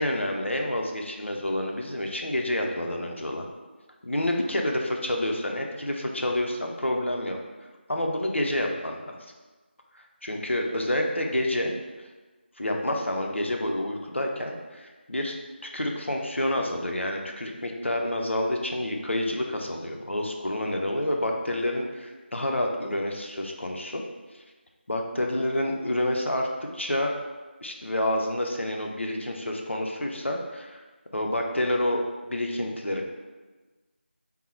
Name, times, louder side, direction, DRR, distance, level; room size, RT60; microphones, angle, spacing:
voice 1, 0.0-3.5 4.0-7.4 7.9-9.1 10.2-11.7 12.6-15.4 15.7-24.0 24.9-26.5 26.7-27.2 27.6-30.8 31.1-33.1, left 1 dB, 85° left, 1 dB, 0.6 m, -28 dB
3.7 x 2.1 x 4.2 m, 1.3 s
figure-of-eight pair, 170°, 6 cm